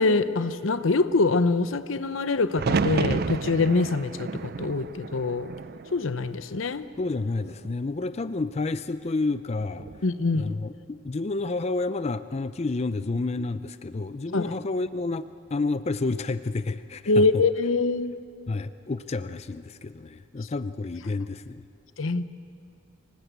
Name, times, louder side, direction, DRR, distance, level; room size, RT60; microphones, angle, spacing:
voice 1, 0.0-5.5 5.9-6.9 10.0-10.5 14.3-14.5 17.1-18.2 22.0-22.3, left 3 dB, 85° left, 13 dB, 0.8 m, -24 dB
sound 1, 2.6-6.6 7.0-7.7 9.6-10.1, right 4 dB, 50° right, 0.5 m, -31 dB
voice 2, 7.0-9.9 10.3-15.3 15.5-17.3 18.5-21.6, left 3 dB, 35° left, 12 dB, 0.4 m, -30 dB
25.5 x 18.5 x 8.2 m, 2.6 s
head